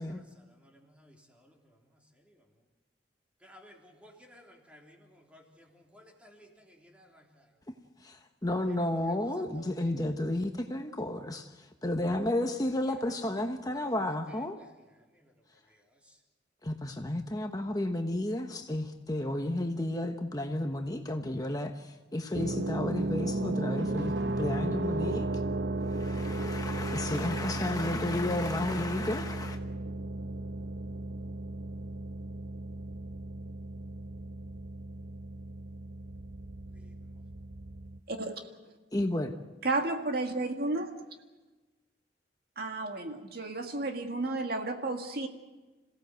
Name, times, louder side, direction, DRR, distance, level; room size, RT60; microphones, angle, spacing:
voice 1, 0.0-2.4 3.4-7.5 8.8-9.3 9.5-9.9 13.1-13.2 13.7-13.9 14.6-14.7 15.1-15.3 15.7-16.2 36.7-36.9, equal, 5° right, 3.4 m, -58 dB
voice 2, 8.0-14.6 16.6-25.4 25.8-29.6 38.9-39.3, left 1 dB, 20° left, 1.1 m, -32 dB
sound 1, 22.3-38.0, right 2 dB, 75° right, 0.9 m, -35 dB
voice 3, 38.1-38.4 39.6-40.9 42.6-45.3, right 2 dB, 60° right, 2.0 m, -32 dB
27.5 x 17.0 x 7.9 m
head